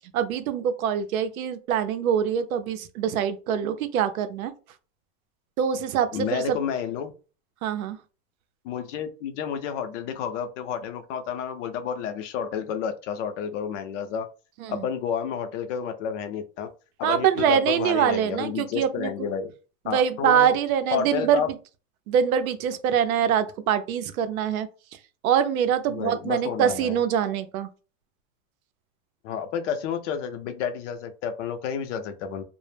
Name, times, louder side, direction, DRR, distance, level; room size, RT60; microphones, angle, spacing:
voice 1, 0.1-4.5 5.6-6.6 7.6-8.0 14.6-14.8 17.0-19.1 19.9-21.4 22.1-24.7 25.2-27.7, right 9 dB, 85° right, 0.5 m, -24 dB
voice 2, 6.1-7.1 8.6-14.3 14.7-16.7 17.0-19.5 19.9-20.5 20.9-21.5 25.9-27.0 29.2-32.4, left 7 dB, 60° left, 0.5 m, -30 dB
2.1 x 2.0 x 3.2 m
supercardioid pair, 145°, 41 cm